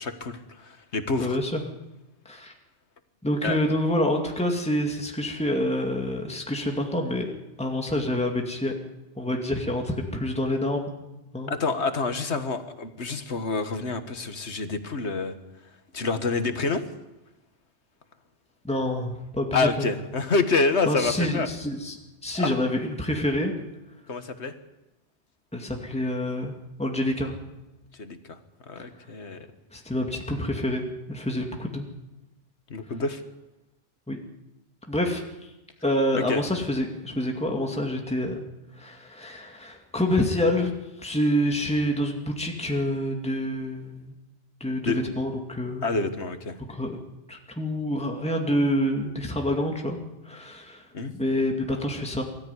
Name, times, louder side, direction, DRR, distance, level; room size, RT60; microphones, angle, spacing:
voice 1, 0.0-1.4 3.4-3.6 11.5-15.3 15.9-16.8 19.5-21.5 22.4-22.6 24.1-24.5 28.0-28.4 28.7-29.5 32.7-33.2 36.3-36.4 44.9-45.1 45.8-46.6 50.9-51.1, left 3 dB, 75° left, 9 dB, 1.9 m, -27 dB
voice 2, 1.2-1.6 2.3-2.5 3.2-7.3 7.6-8.7 9.2-10.9 11.3-11.5 18.6-19.9 20.9-22.0 22.2-23.5 25.5-26.5 26.8-27.4 29.7-31.8 34.1-34.2 34.9-35.2 35.8-38.4 38.8-44.1 44.6-45.9 46.7-46.9 47.3-50.0 50.2-50.9 51.1-52.2, left 1 dB, 5° left, 2 dB, 2.3 m, -27 dB
23.0 x 14.0 x 9.7 m, 1.0 s
omnidirectional pair, 1.2 m